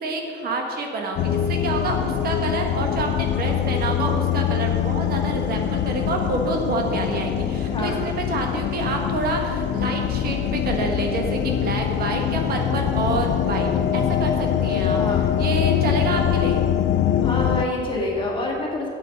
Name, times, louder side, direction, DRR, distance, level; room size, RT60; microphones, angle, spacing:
voice 1, 0.0-15.0 15.4-16.7, right 3 dB, 55° right, 2 dB, 1.4 m, -27 dB
sound 1, 1.2-17.7, left 10 dB, 65° left, 0.4 m, -23 dB
voice 2, 7.7-8.0 14.9-15.3 17.2-18.9, left 1 dB, 25° left, -2 dB, 2.1 m, -27 dB
12.5 x 8.5 x 5.2 m, 2.9 s
cardioid pair, 170°, 19 cm